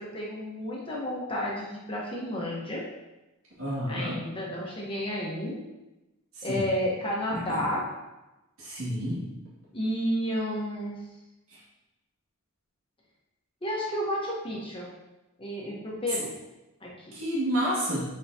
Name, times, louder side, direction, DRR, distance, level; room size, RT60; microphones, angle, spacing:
voice 1, 0.0-2.8 3.9-5.6 6.4-7.8 9.7-11.0 13.6-14.9 15.4-16.3 16.8-17.1, equal, 25° left, -4 dB, 1.2 m, -31 dB
voice 2, 3.6-4.2 6.4-6.6 7.3-7.6 8.6-9.2 17.1-18.0, equal, 75° right, -8 dB, 2.4 m, -30 dB
7.1 x 5.7 x 2.9 m, 1.0 s
head